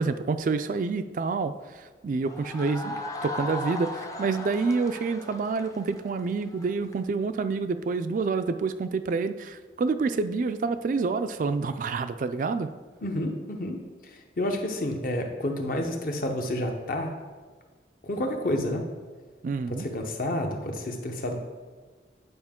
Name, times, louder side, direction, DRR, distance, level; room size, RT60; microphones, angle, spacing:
voice 1, 0.0-1.5 2.0-12.7 19.4-19.9, right 4 dB, 45° right, 10 dB, 0.3 m, -28 dB
sound 1, 2.2-7.0, left 2 dB, 20° left, 0.5 m, -37 dB
voice 2, 13.0-13.8 14.4-17.1 18.0-18.8 19.7-21.4, left 1 dB, 50° left, 4 dB, 0.8 m, -29 dB
9.4 x 4.9 x 3.6 m, 1.4 s
head